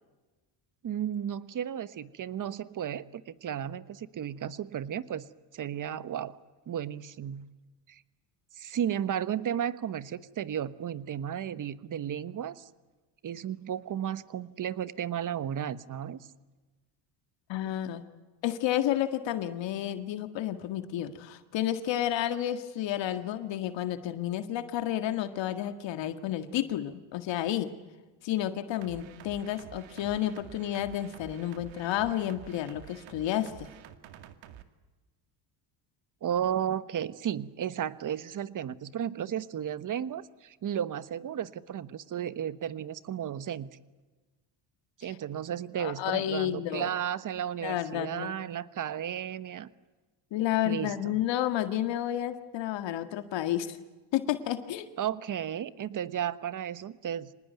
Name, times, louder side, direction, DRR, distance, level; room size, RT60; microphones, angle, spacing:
voice 1, 0.8-5.2 5.5-6.4 6.7-7.5 7.9-8.0 8.6-12.7 13.2-16.3 17.6-17.7 36.2-43.7 45.0-49.7 50.6-51.2 55.0-57.3, right 9 dB, 40° right, 15 dB, 1.3 m, -34 dB
voice 2, 17.5-18.0 18.4-27.7 28.2-33.7 45.8-46.9 47.6-48.3 50.3-53.8 54.1-54.9, left 12 dB, 65° left, 9 dB, 1.9 m, -31 dB
sound 1, 28.8-34.6, right 11 dB, 75° right, 2.2 m, -49 dB
26.0 x 19.5 x 9.4 m, 1.2 s
cardioid pair, 105°, 46 cm